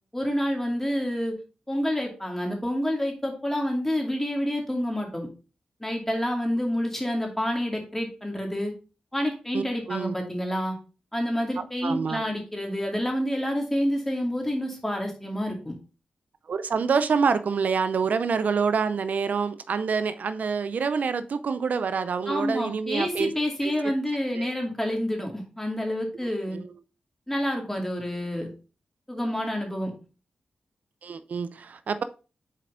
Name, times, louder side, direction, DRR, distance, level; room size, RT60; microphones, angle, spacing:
voice 1, 0.1-1.4 1.7-5.3 5.8-8.7 9.1-10.8 11.1-15.8 22.3-26.6 27.3-28.5 29.1-29.9, equal, 10° left, 2.3 m, -28 dB
voice 2, 9.5-10.1 11.6-12.2 16.5-23.3 23.6-23.7 24.3-24.5 26.5-26.7 31.0-32.0, right 5 dB, 70° right, 0.5 m, -27 dB
6.5 x 4.3 x 3.7 m
cardioid pair, 60°, 3 cm